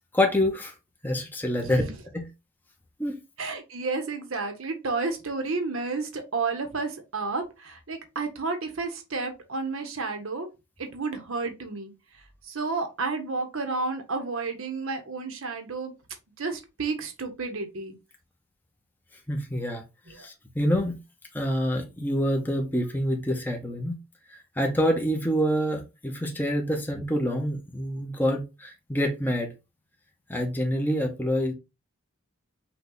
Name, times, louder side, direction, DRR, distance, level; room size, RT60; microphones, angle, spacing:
voice 1, 0.1-0.7 1.0-1.9 2.1-2.3 3.0-3.2 19.3-20.9 21.3-23.9 24.3-29.5 30.3-31.5, equal, 10° left, 0.7 m, -27 dB
voice 2, 1.6-1.9 3.4-10.5 10.8-11.9 12.4-15.9 16.4-17.9 20.1-20.3, right 3 dB, 75° right, 1.0 m, -31 dB
5.8 x 2.3 x 3.8 m
head